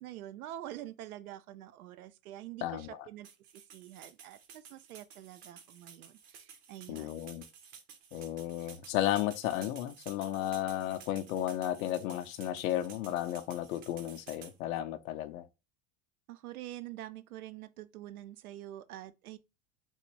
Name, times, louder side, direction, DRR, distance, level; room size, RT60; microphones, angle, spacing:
voice 1, 0.0-3.3 3.5-7.2 16.3-19.4, right 13 dB, 85° right, 0.5 m, -46 dB
sound 1, 3.2-14.5, right 7 dB, 55° right, 1.0 m, -53 dB
voice 2, 6.9-7.5 8.1-15.4, left 12 dB, 70° left, 0.6 m, -34 dB
3.6 x 2.5 x 3.0 m
hypercardioid pair, 90°, 42 cm